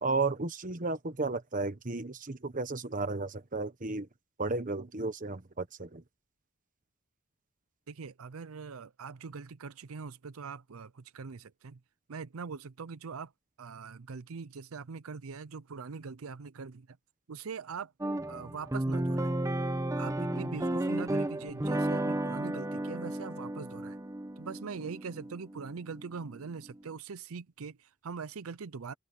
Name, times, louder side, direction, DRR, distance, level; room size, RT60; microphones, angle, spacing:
voice 1, 0.0-4.1 4.4-6.0, right 3 dB, 40° right, 1.2 m, -33 dB
voice 2, 7.9-11.8 12.1-13.3 13.6-17.0 17.3-17.9 18.3-19.3 20.0-24.0 24.4-28.9, right 5 dB, 80° right, 0.6 m, -42 dB
sound 1, 18.0-26.5, right 1 dB, 15° right, 0.9 m, -33 dB
open air
head